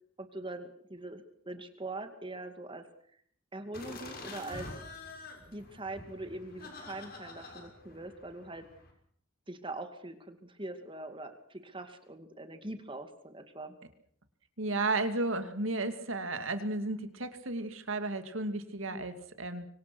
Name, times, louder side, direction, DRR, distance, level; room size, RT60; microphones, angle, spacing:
voice 1, 0.2-2.9 3.5-4.7 5.5-8.7 9.5-13.8 18.8-19.0, right 2 dB, 25° right, 8 dB, 2.3 m, -42 dB
sound 1, 3.7-8.9, left 2 dB, 45° left, 6.3 m, -47 dB
voice 2, 14.6-19.7, right 2 dB, 75° right, 9 dB, 2.5 m, -33 dB
25.0 x 25.0 x 6.3 m, 0.62 s
head